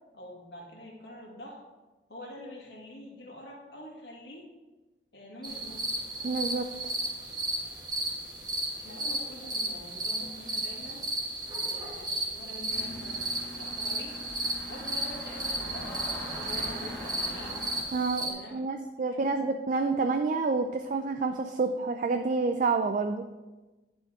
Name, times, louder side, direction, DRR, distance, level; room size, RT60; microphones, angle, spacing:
voice 1, 0.1-1.6 2.1-4.5 5.1-5.9 8.8-11.0 11.5-14.1 14.6-17.6 18.2-18.6 19.0-19.6, left 1 dB, 65° left, -2 dB, 2.1 m, -46 dB
sound 1, 5.4-18.3, right 1 dB, 25° right, 1.5 m, -34 dB
voice 2, 6.2-6.9 17.9-23.2, right 4 dB, 45° right, 6 dB, 0.4 m, -29 dB
sound 2, 12.7-17.8, left 1 dB, 15° left, 2.1 m, -42 dB
10.5 x 4.4 x 4.7 m, 1.2 s
head